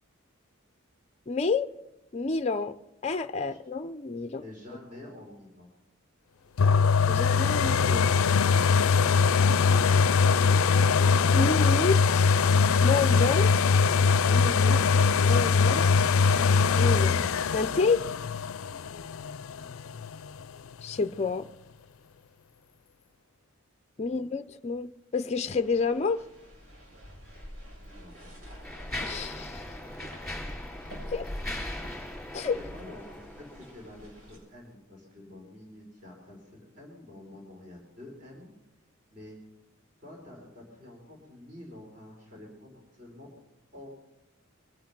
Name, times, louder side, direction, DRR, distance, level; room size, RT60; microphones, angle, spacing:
voice 1, 1.3-1.7 2.1-2.7 3.0-4.4 7.1-8.1 11.3-12.5 12.8-13.5 14.3-15.9 16.8-17.2 17.5-18.0 20.8-21.5 24.0-26.2 29.0-29.6 31.1-31.3 32.3-32.6, left 4 dB, 30° left, 0.5 m, -29 dB
voice 2, 4.4-5.7 19.3-19.7 23.9-24.2 27.8-28.3 32.5-38.5 39.1-39.4 40.0-43.3 43.7-44.0, left 1 dB, 40° right, 4.7 m, -48 dB
sound 1, 6.6-20.3 20.8-20.9, left 5 dB, 85° left, 0.5 m, -22 dB
sound 2, 25.4-34.4, equal, 85° right, 7.3 m, -44 dB
Mechanisms, 27.3-27.4 28.1-33.9, left 1 dB, ahead, 3.0 m, -40 dB
22.0 x 11.0 x 6.0 m
head